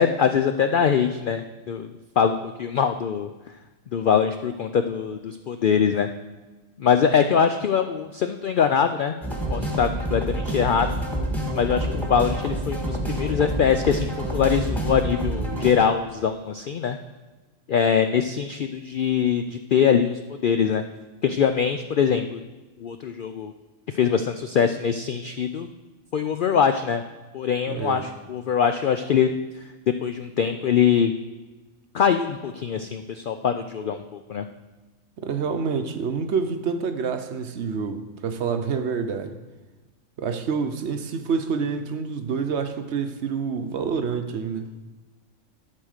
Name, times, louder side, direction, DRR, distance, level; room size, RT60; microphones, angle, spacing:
voice 1, 0.0-3.3 3.9-6.1 6.8-9.1 9.5-10.9 11.5-17.0 17.7-20.8 21.2-22.4 22.8-23.5 23.9-25.7 26.1-27.0 27.3-29.3 30.0-31.1 31.9-34.4, left 7 dB, 75° left, 8 dB, 0.4 m, -23 dB
sound 1, 9.2-15.7, right 1 dB, ahead, 1.4 m, -27 dB
voice 2, 27.7-28.1 35.2-39.4 40.2-44.7, right 5 dB, 60° right, 8 dB, 0.9 m, -27 dB
11.5 x 4.7 x 6.4 m, 1.2 s
omnidirectional pair, 1.4 m